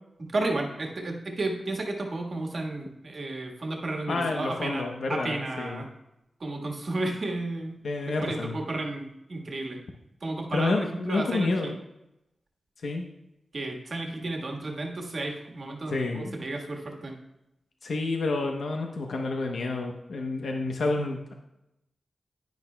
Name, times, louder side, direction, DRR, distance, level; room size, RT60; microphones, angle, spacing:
voice 1, 0.2-4.8 5.1-5.9 6.4-7.8 8.1-9.8 10.2-11.8 13.5-17.1, right 2 dB, 45° right, 1 dB, 1.4 m, -32 dB
voice 2, 4.1-5.8 7.8-8.6 10.5-11.7 12.8-13.0 15.9-16.4 17.8-21.3, left 3 dB, 85° left, 2 dB, 0.8 m, -29 dB
10.5 x 10.5 x 2.2 m, 0.88 s
wide cardioid pair, 165°, 0 cm